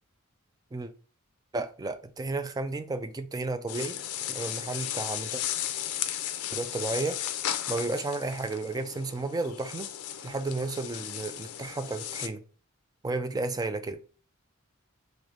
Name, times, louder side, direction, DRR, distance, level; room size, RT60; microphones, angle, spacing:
voice 1, 1.5-4.0 4.3-5.4 6.5-7.2 7.7-9.9 10.2-12.4 13.0-14.0, right 3 dB, 15° right, 0.3 m, -32 dB
sound 1, 3.7-12.3, left 11 dB, 90° left, 0.5 m, -35 dB
3.3 x 3.0 x 3.7 m
head